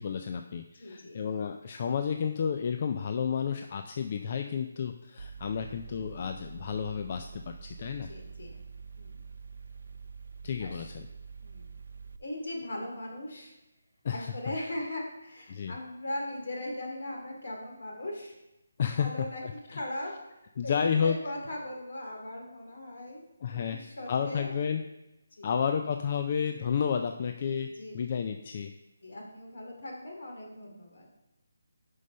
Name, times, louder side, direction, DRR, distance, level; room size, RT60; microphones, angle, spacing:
voice 1, 0.0-8.1 10.4-11.1 14.0-14.3 15.5-15.7 18.8-19.8 20.6-21.2 23.4-23.8 24.1-24.8 25.4-28.7, left 7 dB, 35° left, 6 dB, 0.4 m, -31 dB
voice 2, 0.8-1.2 7.9-8.5 9.0-9.2 10.6-10.9 11.4-11.6 12.2-13.5 14.1-18.3 18.9-19.4 19.7-20.1 20.6-23.2 23.5-24.6 25.4-25.6 27.8-27.9 29.0-31.1, left 1 dB, 65° left, 0 dB, 2.5 m, -39 dB
Mechanical fan, 5.2-12.2, right 5 dB, 75° right, 0.5 m, -46 dB
6.5 x 5.4 x 5.4 m, 0.95 s
hypercardioid pair, 165°, 0 cm